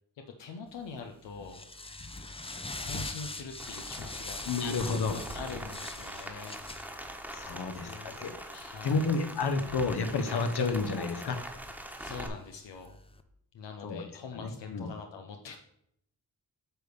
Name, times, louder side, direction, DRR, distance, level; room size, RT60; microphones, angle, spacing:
voice 1, 0.4-1.6 2.8-4.4 4.9-6.6 7.8-8.2 8.5-9.2 12.0-13.0 13.5-15.6, left 5 dB, 85° left, 4 dB, 0.7 m, -43 dB
sound 1, 0.8-13.2, left 2 dB, 15° left, 0.5 m, -44 dB
Rain, 3.6-12.3, right 1 dB, 5° right, 1.2 m, -43 dB
voice 2, 4.5-5.2 7.3-8.3 8.8-11.4 13.8-14.0 14.3-14.9, left 4 dB, 65° left, 8 dB, 1.1 m, -30 dB
8.9 x 3.4 x 6.7 m, 0.78 s
wide cardioid pair, 90°, 42 cm